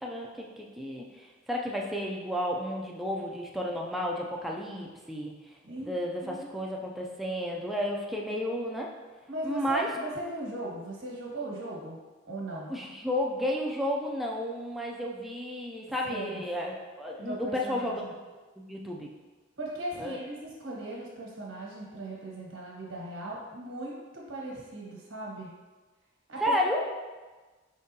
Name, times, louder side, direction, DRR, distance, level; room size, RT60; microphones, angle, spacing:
voice 1, 0.0-5.3 5.8-8.9 9.4-9.9 12.7-18.0 18.7-19.1 20.0-20.2 26.4-26.8, equal, ahead, -2 dB, 0.3 m, -32 dB
voice 2, 9.3-12.0 12.3-12.7 16.0-16.4 17.2-18.1 19.6-25.5 26.3-26.6, right 2 dB, 80° right, -4 dB, 1.2 m, -38 dB
4.7 x 3.6 x 2.7 m, 1.3 s
head